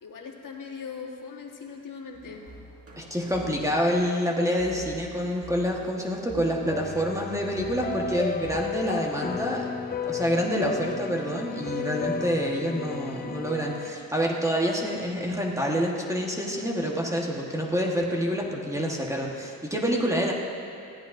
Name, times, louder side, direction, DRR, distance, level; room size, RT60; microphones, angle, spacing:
voice 1, 0.0-2.5, left 5 dB, 70° left, 1 dB, 1.5 m, -40 dB
sound 1, 2.1-9.0, equal, 40° right, 1.9 m, -47 dB
voice 2, 3.0-9.7 10.0-20.3, equal, 10° right, -2 dB, 1.3 m, -27 dB
sound 2, 6.7-13.9, left 5 dB, 30° left, 0.4 m, -33 dB
19.5 x 14.5 x 2.6 m, 2.7 s
wide cardioid pair, 125°, 34 cm